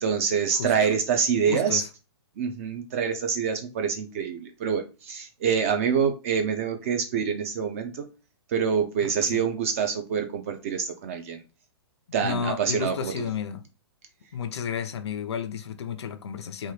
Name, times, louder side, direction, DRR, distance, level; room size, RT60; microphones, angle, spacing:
voice 1, 0.0-1.8 2.4-8.1 8.5-11.4 12.1-13.1, right 7 dB, 30° right, 0.4 m, -26 dB
voice 2, 1.5-1.9 9.2-9.3 12.2-13.6 14.3-16.7, left 7 dB, 80° left, 0.5 m, -32 dB
3.0 x 2.2 x 3.2 m
hypercardioid pair, 160°, 14 cm